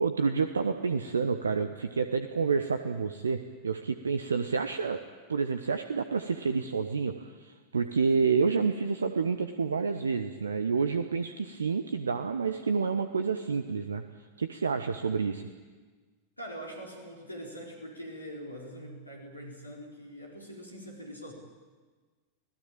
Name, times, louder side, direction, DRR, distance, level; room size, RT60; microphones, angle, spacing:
voice 1, 0.0-5.0 5.3-14.0 14.4-15.5, right 5 dB, 70° right, 9 dB, 1.1 m, -29 dB
voice 2, 16.4-21.3, equal, 85° left, 0 dB, 4.3 m, -43 dB
25.5 x 17.0 x 9.0 m, 1.4 s
figure-of-eight pair, 90°, 0 cm